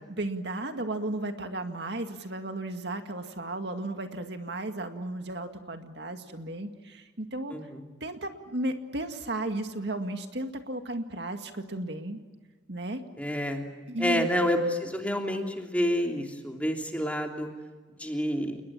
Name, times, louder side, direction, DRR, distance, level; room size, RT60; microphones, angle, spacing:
voice 1, 0.1-7.5 8.0-12.2 12.7-13.0 13.9-14.3, right 1 dB, 60° right, 6 dB, 2.1 m, -34 dB
voice 2, 7.5-7.8 13.2-13.7 14.0-17.5 18.0-18.6, equal, 5° left, 2 dB, 3.0 m, -28 dB
29.5 x 21.0 x 8.7 m, 1.3 s
head